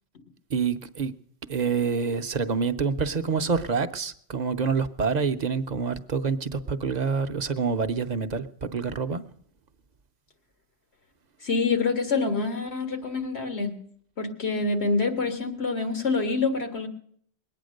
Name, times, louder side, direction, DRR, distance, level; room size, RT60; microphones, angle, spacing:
voice 1, 0.5-1.1 1.5-9.2, right 5 dB, 45° right, 0.8 m, -27 dB
voice 2, 11.4-13.8 14.2-16.9, left 4 dB, 90° left, 2.0 m, -26 dB
21.0 x 9.2 x 6.5 m
omnidirectional pair, 1.1 m